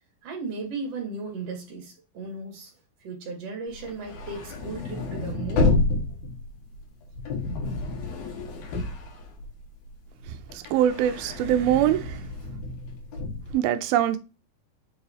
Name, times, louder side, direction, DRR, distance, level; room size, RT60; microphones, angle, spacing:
voice 1, 0.2-2.7 3.0-5.7, right 3 dB, 45° right, 3.1 m, -36 dB
sound 1, 3.8-9.9 10.2-13.5, left 2 dB, 85° left, 3.8 m, -29 dB
voice 2, 10.3-12.2 13.5-14.2, right 11 dB, 90° right, 2.5 m, -23 dB
7.4 x 4.8 x 2.8 m
omnidirectional pair, 4.2 m